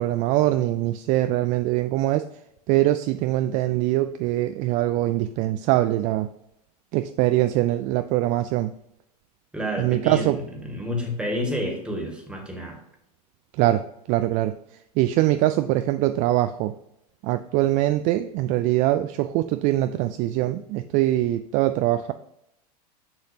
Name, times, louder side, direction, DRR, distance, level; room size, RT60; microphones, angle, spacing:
voice 1, 0.0-2.2 2.7-6.3 6.9-8.7 9.8-10.4 13.6-14.5 15.0-16.7 17.2-22.1, right 15 dB, 40° right, 10 dB, 0.4 m, -23 dB
voice 2, 9.5-10.3 10.7-12.8, equal, 5° right, 1 dB, 2.0 m, -29 dB
6.6 x 5.8 x 2.8 m, 0.80 s
hypercardioid pair, 100°, 20 cm